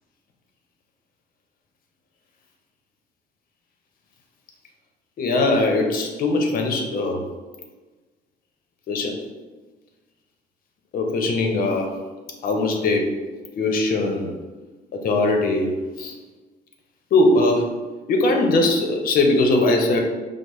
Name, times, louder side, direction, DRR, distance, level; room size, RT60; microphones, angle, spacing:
voice 1, 5.2-7.2 8.9-9.1 10.9-11.9 12.4-13.1 13.6-14.3 14.9-15.7 16.0-16.1 17.1-17.7 18.1-20.0, left 2 dB, 60° left, 2 dB, 0.7 m, -20 dB
5.1 x 2.0 x 3.1 m, 1.3 s
cardioid pair, 110°, 17 cm